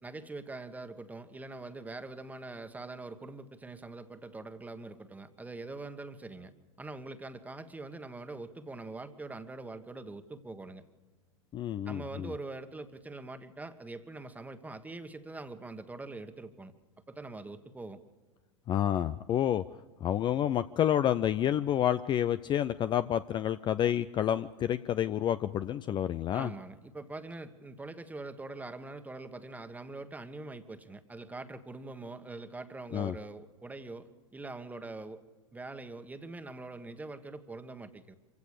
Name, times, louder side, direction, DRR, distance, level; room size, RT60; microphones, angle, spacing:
voice 1, 0.0-6.5 6.8-10.8 11.8-16.8 17.1-18.0 26.3-35.2 35.5-38.1, right 2 dB, 10° right, 9 dB, 1.5 m, -43 dB
voice 2, 11.5-12.3 18.7-19.6 20.0-26.5 32.9-33.2, left 10 dB, 30° left, 13 dB, 0.5 m, -29 dB
25.5 x 16.0 x 6.7 m, 1.3 s
hypercardioid pair, 95°, 16 cm